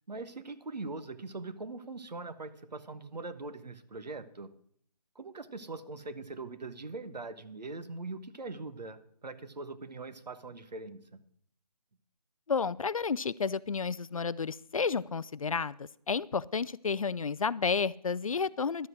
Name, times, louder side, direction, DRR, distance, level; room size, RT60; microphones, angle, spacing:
voice 1, 0.0-4.5 5.1-11.2, right 3 dB, 80° right, 12 dB, 1.3 m, -42 dB
voice 2, 12.5-18.9, left 5 dB, 55° left, 20 dB, 0.4 m, -31 dB
12.0 x 7.6 x 6.3 m, 0.64 s
figure-of-eight pair, 170°, 21 cm